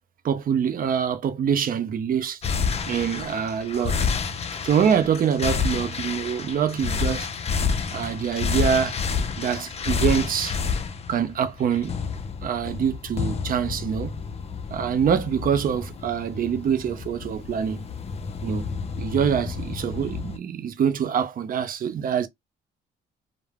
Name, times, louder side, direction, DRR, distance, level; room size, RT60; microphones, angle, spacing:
voice 1, 0.2-2.4 2.9-4.1 4.6-7.3 7.9-9.0 9.4-10.6 11.1-12.0 12.4-14.2 14.7-17.9 18.4-18.7 19.0-22.3, right 8 dB, 45° right, 0.5 m, -25 dB
sound 1, 2.4-20.4, left 5 dB, 30° left, 0.4 m, -29 dB
2.2 x 2.0 x 3.2 m
cardioid pair, 90°, 20 cm